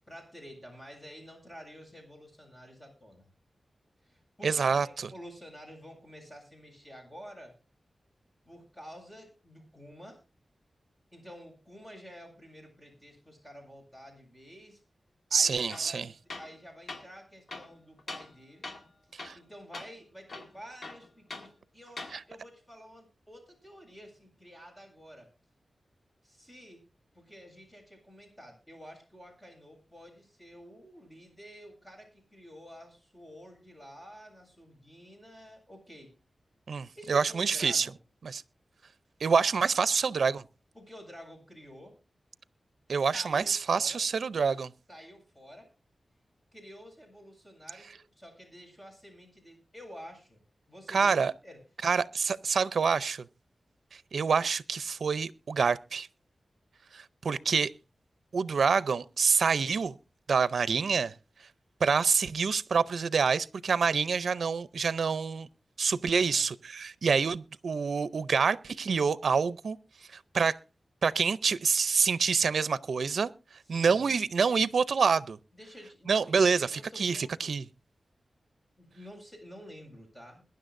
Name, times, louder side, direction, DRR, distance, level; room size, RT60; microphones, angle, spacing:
voice 1, 0.1-3.3 4.0-7.5 8.4-10.2 11.1-14.8 15.3-16.1 16.4-18.7 19.3-25.3 26.2-26.8 27.1-36.1 36.9-37.9 40.7-42.0 42.9-44.0 44.9-45.7 46.5-50.4 50.7-51.1 51.4-51.6 66.1-66.5 73.6-74.1 75.5-77.5 78.8-80.4, equal, 25° left, 7.5 m, -50 dB
voice 2, 4.4-5.1 15.3-16.1 19.1-19.4 22.1-22.2 36.7-37.9 38.2-38.4 39.2-40.4 42.9-44.7 50.9-51.3 51.8-53.2 54.1-56.1 56.9-57.7 58.3-60.0 60.3-61.1 61.8-65.5 65.8-69.8 70.1-70.6 71.0-73.3 73.7-75.4 76.1-77.7, right 5 dB, 80° right, 0.5 m, -27 dB
Tools, 15.7-15.9 16.3-16.6 16.9-17.1 17.5-18.4 18.6-18.9 19.2-19.5 19.7-19.9 20.3-21.5 21.9-22.2, left 3 dB, 65° left, 1.9 m, -42 dB
22.0 x 10.5 x 2.6 m
wide cardioid pair, 80°, 0 cm